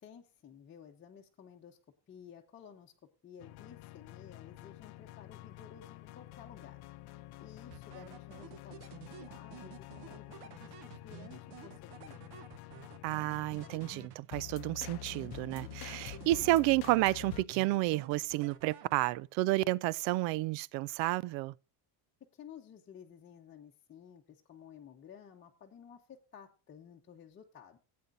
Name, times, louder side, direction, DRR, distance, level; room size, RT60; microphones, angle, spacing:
voice 1, 0.0-1.8 2.1-2.9 3.2-6.8 7.4-12.5 22.3-27.8, left 8 dB, 25° left, 0.9 m, -54 dB
sound 1, 3.4-17.5, left 16 dB, 60° left, 0.6 m, -48 dB
sound 2, 7.7-14.5 14.9-16.9 17.3-19.3, right 10 dB, 60° right, 1.0 m, -52 dB
voice 2, 13.0-21.5, right 18 dB, 80° right, 0.6 m, -31 dB
16.5 x 8.6 x 2.6 m
cardioid pair, 160°, 44 cm